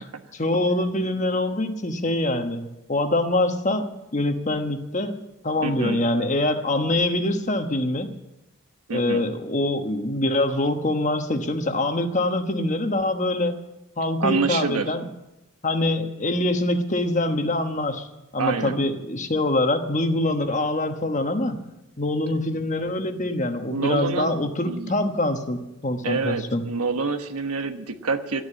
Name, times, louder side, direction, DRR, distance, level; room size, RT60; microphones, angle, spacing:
voice 1, 0.3-5.2 5.4-8.1 8.9-13.6 14.0-15.0 15.6-18.1 18.3-21.6 22.0-26.6, left 1 dB, 35° left, 7 dB, 1.1 m, -24 dB
voice 2, 5.6-6.0 8.9-9.2 14.2-14.9 18.4-18.8 23.7-24.3 24.7-24.9 26.0-28.4, right 4 dB, 90° right, 8 dB, 1.2 m, -27 dB
13.0 x 9.9 x 8.5 m, 0.93 s
head